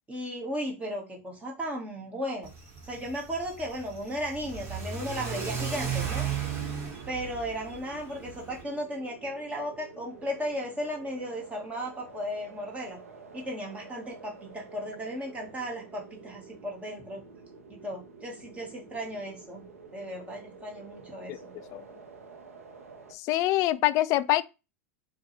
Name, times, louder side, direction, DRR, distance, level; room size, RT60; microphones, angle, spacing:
voice 1, 0.1-2.5 2.9-6.3 7.1-13.0 13.3-17.2 17.7-19.6 19.9-21.5, equal, 20° right, 1.4 m, -35 dB
Car / Accelerating revving vroom, 2.4-8.6, right 7 dB, 35° right, 1.4 m, -35 dB
sound 1, 6.3-23.1, right 4 dB, 90° right, 0.7 m, -50 dB
voice 2, 23.1-24.4, left 16 dB, 45° left, 0.3 m, -25 dB
4.3 x 2.4 x 3.1 m
hypercardioid pair, 95°, 8 cm